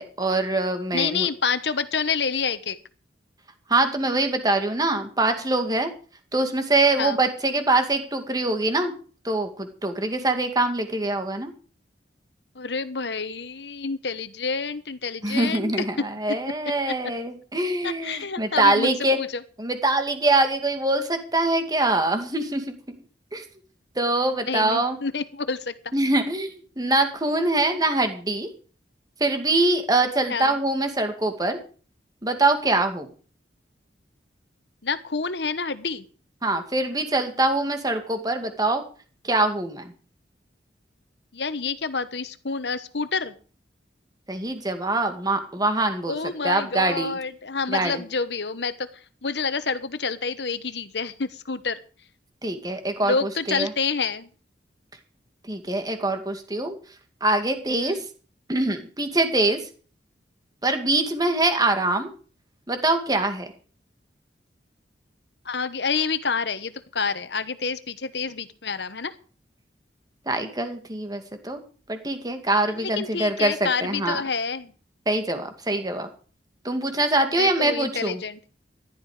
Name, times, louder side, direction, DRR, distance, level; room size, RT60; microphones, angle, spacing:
voice 1, 0.0-1.3 3.7-5.9 6.3-8.9 9.2-11.5 15.2-19.2 19.6-22.7 23.3-23.4 24.0-25.0 25.9-28.5 29.2-31.6 32.2-33.1 36.4-38.8 39.2-39.9 44.3-46.2 46.4-47.2 47.7-48.0 52.4-53.7 55.5-56.8 57.2-58.0 58.5-59.7 60.6-62.1 62.7-63.5 70.3-71.6 71.9-74.2 75.1-76.1 76.6-78.2, right 2 dB, 20° right, 7 dB, 2.2 m, -24 dB
voice 2, 0.9-2.8 7.0-7.2 12.5-15.7 16.0-16.1 16.9-17.0 17.8-19.4 24.5-25.9 30.3-30.6 34.8-36.0 41.3-43.4 46.1-48.9 49.2-51.8 53.0-54.3 57.8-58.0 65.4-69.1 72.8-74.7 77.3-78.4, left 5 dB, 75° left, 13 dB, 1.2 m, -28 dB
15.0 x 12.0 x 5.0 m, 0.40 s
head